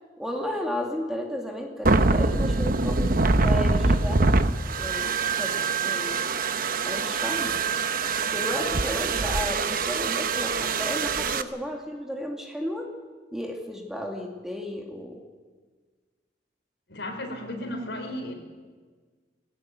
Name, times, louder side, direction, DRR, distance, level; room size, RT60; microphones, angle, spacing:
voice 1, 0.2-4.2 4.8-5.1 5.4-6.2 6.8-7.6 8.2-12.9 13.3-15.2, equal, 5° right, 1 dB, 2.5 m, -33 dB
Blow dryer, 1.9-11.4, right 3 dB, 50° right, 0.9 m, -24 dB
voice 2, 16.9-18.3, left 1 dB, 70° left, 3 dB, 5.0 m, -34 dB
20.0 x 18.0 x 9.5 m, 1.4 s
head